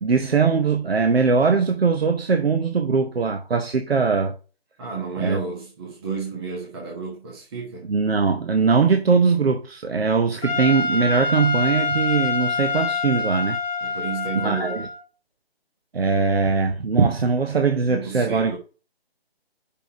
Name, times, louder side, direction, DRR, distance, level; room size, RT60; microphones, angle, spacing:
voice 1, 0.0-4.3 5.2-5.4 7.9-13.6 14.4-14.8 15.9-18.6, right 5 dB, 75° right, 0.9 m, -21 dB
voice 2, 4.8-7.9 13.8-14.8 17.9-18.6, right 5 dB, 25° right, 1.3 m, -31 dB
Trumpet, 10.4-15.0, left 4 dB, 15° left, 1.9 m, -26 dB
5.6 x 4.1 x 5.6 m
figure-of-eight pair, 155°, 31 cm